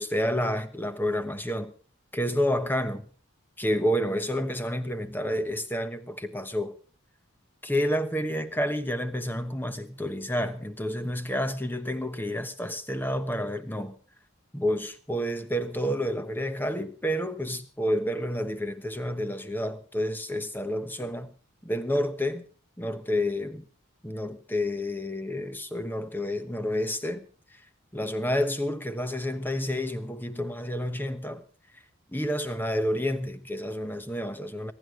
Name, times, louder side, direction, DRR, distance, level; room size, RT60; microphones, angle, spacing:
voice 1, 0.0-1.7 2.1-3.1 3.6-6.8 7.6-13.9 14.5-21.3 21.6-22.5 22.8-23.6 24.0-27.2 27.9-31.4 31.7-31.8 32.1-34.7, equal, 10° left, 1.1 m, -29 dB
22.5 x 11.0 x 5.0 m
head